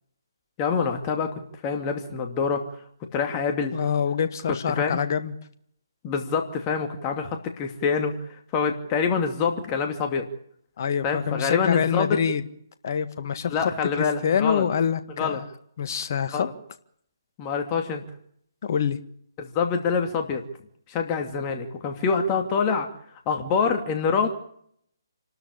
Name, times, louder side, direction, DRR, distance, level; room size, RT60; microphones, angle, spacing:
voice 1, 0.6-2.6 3.1-3.7 4.5-5.0 6.0-8.2 8.5-10.3 11.0-12.2 13.5-14.6 15.2-15.4 16.3-16.5 17.4-18.0 19.4-20.4 20.9-22.9 23.3-24.3, left 5 dB, 25° left, 4 dB, 2.7 m, -26 dB
voice 2, 3.7-5.3 10.8-12.4 12.8-15.4 15.8-16.5 18.6-19.0, left 7 dB, 45° left, 10 dB, 1.7 m, -26 dB
28.5 x 12.5 x 8.6 m, 0.69 s
figure-of-eight pair, 140°, 2 cm